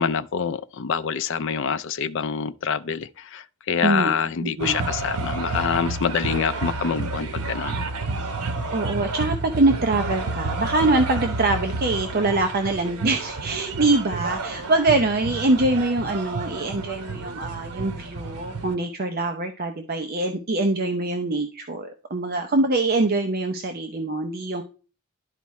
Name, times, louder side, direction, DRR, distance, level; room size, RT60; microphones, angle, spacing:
voice 1, 0.0-7.8, left 6 dB, 55° left, 0.4 m, -26 dB
voice 2, 3.8-4.1 4.6-4.8 8.7-24.6, right 2 dB, 45° right, 0.7 m, -24 dB
sound 1, 4.6-18.7, right 3 dB, 90° right, 1.1 m, -30 dB
12.0 x 4.6 x 3.1 m
head